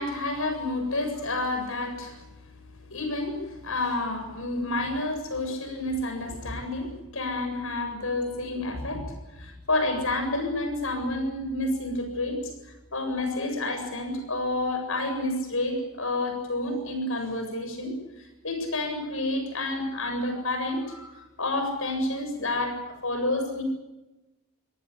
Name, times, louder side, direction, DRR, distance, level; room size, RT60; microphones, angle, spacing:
voice 1, 0.0-2.2 2.9-9.0 9.4-22.8 23.0-23.6, left 2 dB, 70° left, 5 dB, 7.7 m, -29 dB
26.0 x 18.5 x 8.5 m, 1.0 s
head